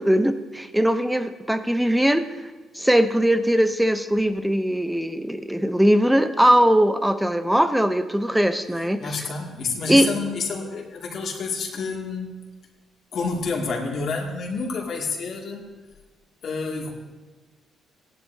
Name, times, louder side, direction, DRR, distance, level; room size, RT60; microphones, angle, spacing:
voice 1, 0.0-2.2 2.7-9.2 9.9-10.1, equal, 5° right, 10 dB, 0.7 m, -20 dB
voice 2, 9.0-12.4 13.1-15.7 16.4-16.9, left 4 dB, 60° left, 0 dB, 2.4 m, -29 dB
17.0 x 11.0 x 2.8 m, 1.2 s
cardioid pair, 90°, 0 cm